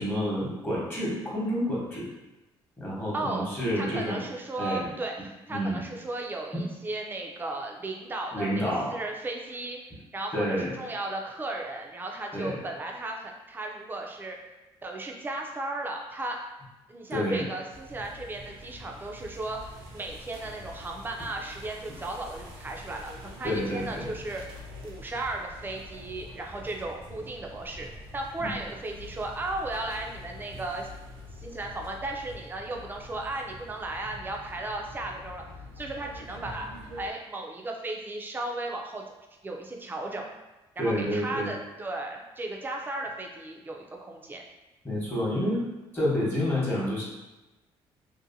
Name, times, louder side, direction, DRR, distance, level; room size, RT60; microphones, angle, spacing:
voice 1, 0.0-2.1 2.8-4.2 4.6-4.8 5.5-5.8 6.5-6.6 8.3-8.9 10.3-10.7 12.3-12.6 17.1-17.5 23.4-24.1 28.4-28.5 40.8-41.5 44.8-45.6 45.9-47.0, equal, 20° left, -6 dB, 1.0 m, -29 dB
voice 2, 3.1-3.4 3.8-8.6 8.9-9.8 10.1-14.4 14.8-16.4 16.9-24.4 24.8-27.9 28.1-30.9 31.4-35.4 35.8-36.7 37.0-39.0 39.4-40.2 40.8-44.4, right 2 dB, 20° right, 1 dB, 0.4 m, -35 dB
sound 1, 17.7-37.1, left 1 dB, 80° right, 0.6 m, -45 dB
2.7 x 2.1 x 2.6 m, 1.1 s
cardioid pair, 95°, 10 cm